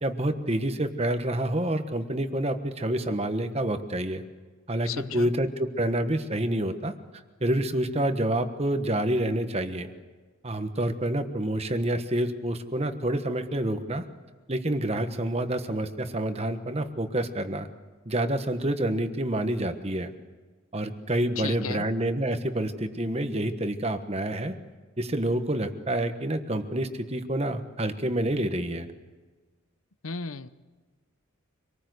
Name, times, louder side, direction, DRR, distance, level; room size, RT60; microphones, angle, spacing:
voice 1, 0.0-4.2 4.7-6.9 7.4-9.9 10.4-14.0 14.5-17.7 18.0-20.1 20.7-24.5 25.0-28.9, right 1 dB, 30° right, 8 dB, 1.3 m, -28 dB
voice 2, 4.8-5.3 21.4-21.8 30.0-30.5, left 5 dB, 85° left, 13 dB, 0.9 m, -34 dB
26.0 x 19.5 x 8.0 m, 1.3 s
head